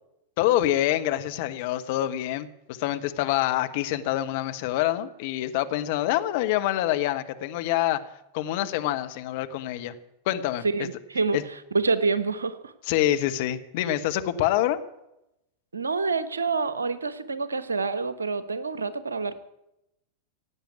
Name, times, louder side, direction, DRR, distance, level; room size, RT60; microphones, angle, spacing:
voice 1, 0.4-8.0 8.3-9.9 10.2-10.9 11.3-11.4 12.9-14.8, left 13 dB, 50° left, 9 dB, 1.2 m, -26 dB
voice 2, 10.6-12.7 15.7-19.4, right 4 dB, 75° right, 15 dB, 1.1 m, -27 dB
16.5 x 8.9 x 9.7 m, 0.86 s
figure-of-eight pair, 90°, 0 cm